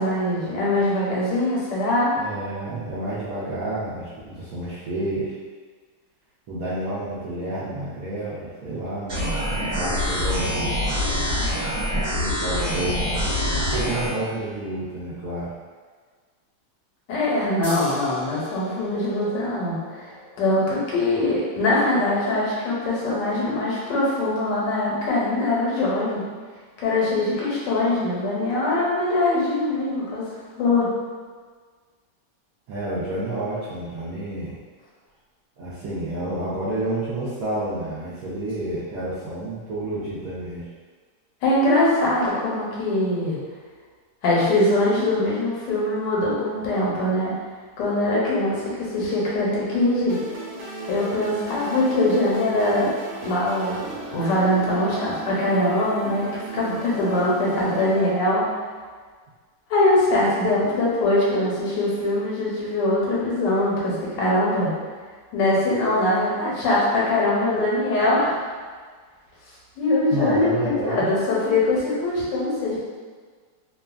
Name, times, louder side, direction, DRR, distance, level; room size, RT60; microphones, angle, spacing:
voice 1, 0.0-2.1 17.1-20.1 20.4-26.2 26.8-30.9 41.4-43.4 44.2-47.3 47.8-50.2 50.9-58.5 59.7-64.7 65.3-68.4 69.8-72.8, left 1 dB, 80° left, -5 dB, 1.3 m, -22 dB
voice 2, 2.2-5.4 6.5-10.8 11.9-13.2 13.5-15.5 32.7-34.6 35.6-40.7 70.1-71.1, right 1 dB, 70° right, -10 dB, 0.8 m, -30 dB
sound 1, 9.1-14.1, left 1 dB, 45° right, 1.3 m, -25 dB
sound 2, 17.6-24.8, left 1 dB, ahead, 0.8 m, -42 dB
sound 3, 50.1-58.1, right 2 dB, 90° right, 1.3 m, -35 dB
3.0 x 2.3 x 2.3 m, 1.6 s
omnidirectional pair, 2.0 m